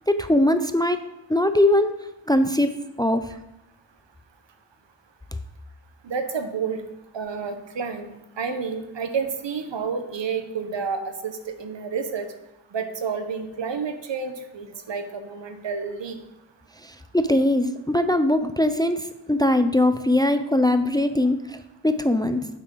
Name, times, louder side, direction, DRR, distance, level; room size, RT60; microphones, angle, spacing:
voice 1, 0.1-1.0 1.3-1.9 2.3-2.7 3.0-3.3 16.8-22.5, left 1 dB, 10° left, 10 dB, 0.4 m, -21 dB
voice 2, 6.0-6.8 7.1-12.3 12.7-16.2, right 5 dB, 75° right, 7 dB, 1.1 m, -30 dB
9.6 x 7.5 x 3.9 m, 0.95 s
wide cardioid pair, 85°, 44 cm